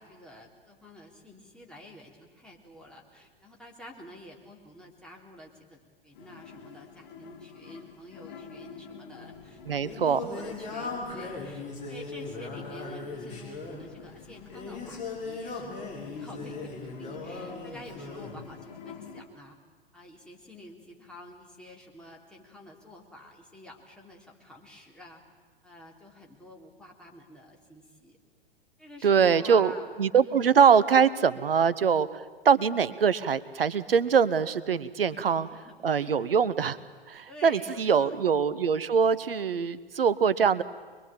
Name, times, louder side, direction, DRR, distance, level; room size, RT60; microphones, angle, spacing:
voice 1, 0.0-19.6 19.9-25.2 25.6-28.2 28.8-30.0 30.2-30.6 35.1-36.4 37.3-38.4 38.7-39.1, left 1 dB, 5° left, -1 dB, 3.3 m, -49 dB
sound 1, 6.1-19.2, left 7 dB, 45° left, 2.5 m, -48 dB
Singing, 9.3-18.4, left 3 dB, 25° left, 6.9 m, -38 dB
voice 2, 9.7-10.2 29.0-29.7 30.0-35.5 35.8-36.8 37.1-40.6, right 6 dB, 70° right, 16 dB, 1.0 m, -23 dB
24.0 x 22.0 x 8.8 m, 1.4 s
figure-of-eight pair, 105°, 30 cm